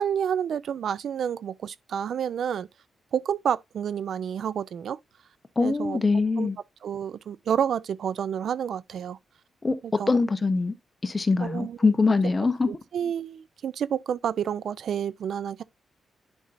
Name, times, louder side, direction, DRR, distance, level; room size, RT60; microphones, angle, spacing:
voice 1, 0.0-2.7 3.1-5.0 5.6-6.0 6.4-6.5 6.8-9.2 10.0-10.1 11.4-11.8 12.7-15.6, right 8 dB, 65° right, 0.4 m, -29 dB
voice 2, 5.6-6.6 9.6-9.8 10.1-10.7 11.0-12.7, left 3 dB, 25° left, 0.8 m, -23 dB
10.5 x 5.4 x 2.5 m
wide cardioid pair, 155°, 0 cm